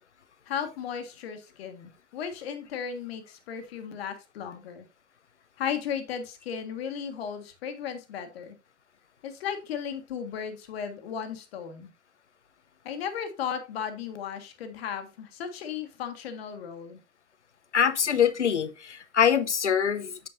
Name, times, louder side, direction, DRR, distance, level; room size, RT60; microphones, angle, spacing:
voice 1, 0.5-4.9 5.6-8.6 9.2-11.9 12.9-17.0, left 7 dB, 60° left, 1.6 m, -35 dB
voice 2, 17.7-20.2, left 8 dB, 85° left, 0.8 m, -24 dB
8.8 x 6.8 x 2.6 m
figure-of-eight pair, 85°, 34 cm